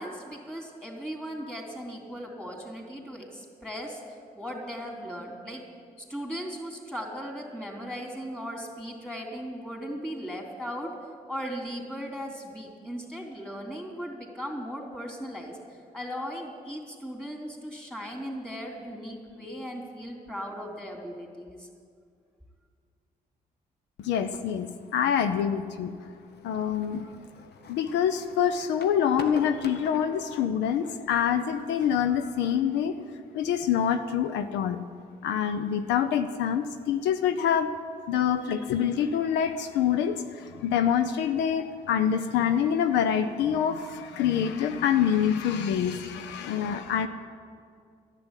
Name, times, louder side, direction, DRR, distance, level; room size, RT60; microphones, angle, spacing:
voice 1, 0.0-4.0 4.3-5.6 6.0-10.9 11.3-21.7, equal, 5° left, 1 dB, 3.2 m, -37 dB
voice 2, 24.0-25.9 26.4-27.1 27.7-32.9 33.3-34.8 35.2-37.7 38.1-47.1, left 8 dB, 90° left, 9 dB, 0.6 m, -26 dB
sound 1, 24.2-30.5, left 4 dB, 70° left, 1.1 m, -48 dB
11.0 x 7.7 x 9.8 m, 2.2 s
supercardioid pair, 50°, 18 cm